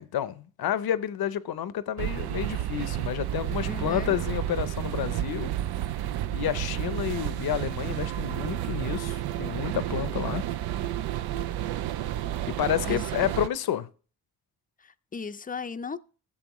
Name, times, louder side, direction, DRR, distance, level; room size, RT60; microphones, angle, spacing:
voice 1, 0.0-5.5 6.3-10.4 12.5-13.9, left 10 dB, 75° left, 0.7 m, -30 dB
sound 1, 2.0-13.5, right 12 dB, 90° right, 0.5 m, -31 dB
voice 2, 3.7-4.2 12.8-13.3 14.8-16.0, left 5 dB, 25° left, 0.4 m, -37 dB
14.5 x 7.6 x 3.0 m
cardioid pair, 90°, 37 cm